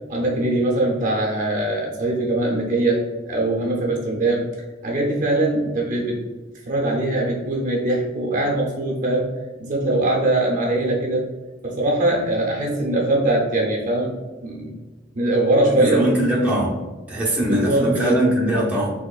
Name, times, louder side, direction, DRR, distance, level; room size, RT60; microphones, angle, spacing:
voice 1, 0.1-4.5 4.8-6.2 6.7-9.3 9.6-11.2 11.6-14.2 14.4-14.7 15.1-16.0 17.5-18.3, right 2 dB, 40° right, -1 dB, 0.7 m, -21 dB
voice 2, 15.7-16.8 17.1-18.9, right 1 dB, 10° right, -5 dB, 0.7 m, -21 dB
4.1 x 2.9 x 2.3 m, 1.3 s
head